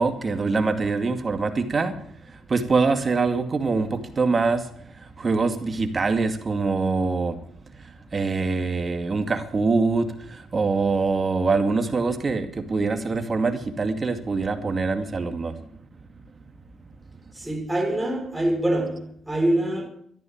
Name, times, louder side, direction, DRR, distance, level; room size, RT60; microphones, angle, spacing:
voice 1, 0.0-7.4 7.8-15.6, right 4 dB, 35° right, 2.3 m, -24 dB
voice 2, 17.3-19.9, right 1 dB, 10° right, 4.0 m, -25 dB
13.5 x 11.0 x 8.9 m
cardioid pair, 90°, 0 cm